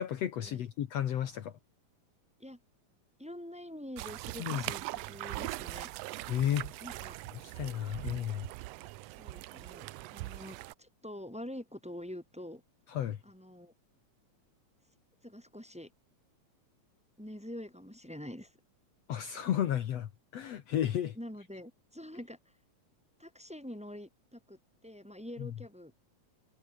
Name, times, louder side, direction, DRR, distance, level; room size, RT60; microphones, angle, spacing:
voice 1, 0.0-1.5 4.4-4.6 6.3-6.7 7.4-8.5 12.9-13.2 19.1-21.2 25.4-25.5, left 10 dB, 65° left, 2.3 m, -33 dB
voice 2, 3.2-5.9 6.8-7.2 9.2-9.9 10.1-12.6 13.2-13.7 15.2-15.9 17.2-18.5 21.2-22.4 23.2-26.1, equal, ahead, 4.1 m, -46 dB
sound 1, 4.0-10.7, right 19 dB, 80° right, 1.5 m, -41 dB
omnidirectional pair, 3.4 m